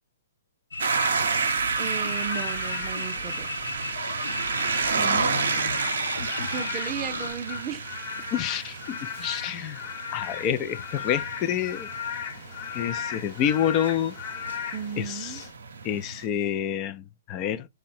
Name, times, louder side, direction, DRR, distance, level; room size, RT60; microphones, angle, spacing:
sound 1, 0.7-7.3, left 3 dB, 85° left, 0.7 m, -36 dB
sound 2, 0.8-16.3, right 5 dB, 75° right, 0.6 m, -31 dB
voice 1, 1.8-3.5 6.5-7.9 14.7-15.4, right 7 dB, 25° right, 0.5 m, -35 dB
Frog / Rain, 2.0-15.5, left 7 dB, 45° left, 1.0 m, -37 dB
voice 2, 4.9-5.8 6.2-6.3 8.3-9.8 10.1-11.9 12.7-14.2 15.0-15.4 15.8-17.7, left 9 dB, 30° left, 0.3 m, -28 dB
3.7 x 2.1 x 4.2 m
hypercardioid pair, 130°, 0 cm